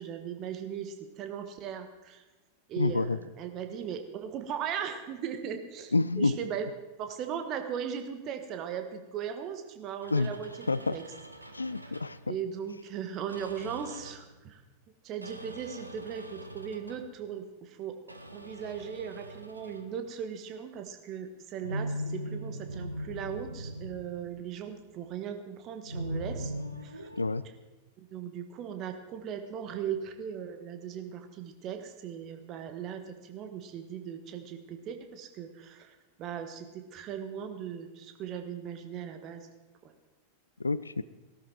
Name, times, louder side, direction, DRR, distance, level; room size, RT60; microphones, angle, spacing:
voice 1, 0.0-2.2 2.7-6.7 7.0-11.0 12.3-14.6 15.0-17.9 18.3-26.5 26.8-27.1 28.0-39.5 39.8-39.9, right 8 dB, 35° right, 7 dB, 1.7 m, -38 dB
voice 2, 2.8-3.2 5.9-6.4 10.1-10.3 10.7-11.0 11.5-12.3 27.2-27.4 40.6-41.0, left 3 dB, 80° left, 17 dB, 0.4 m, -28 dB
sound 1, 10.0-12.3 13.3-14.3 15.2-17.1 18.1-20.0 21.6-24.8 25.8-27.3, equal, 85° right, 1.0 m, -40 dB
18.5 x 12.5 x 4.6 m, 1.2 s
figure-of-eight pair, 90°, 0 cm